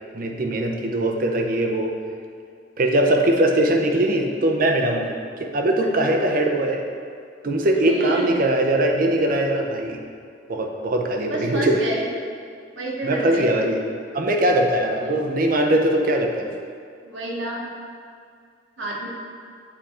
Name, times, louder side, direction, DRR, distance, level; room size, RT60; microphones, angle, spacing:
voice 1, 0.1-1.9 2.8-6.8 7.4-10.0 10.5-11.9 13.0-13.8 14.1-16.5, right 1 dB, 50° right, 2 dB, 0.6 m, -21 dB
voice 2, 7.8-8.3 11.3-12.0 12.8-13.5 15.0-15.3 17.0-17.7 18.8-19.1, right 1 dB, 85° right, -3 dB, 1.2 m, -29 dB
7.2 x 3.7 x 4.3 m, 2.2 s
head